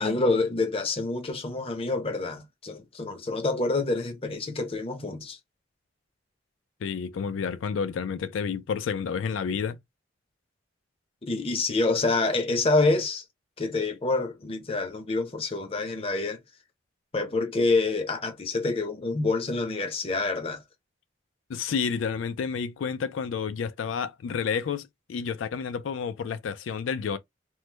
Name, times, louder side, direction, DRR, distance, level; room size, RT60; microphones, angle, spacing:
voice 1, 0.0-5.4 11.2-13.2 13.6-16.4 17.1-20.6, left 3 dB, 30° left, 0.5 m, -27 dB
voice 2, 6.8-9.8 21.5-27.2, left 6 dB, 85° left, 0.4 m, -30 dB
3.1 x 2.0 x 3.2 m
head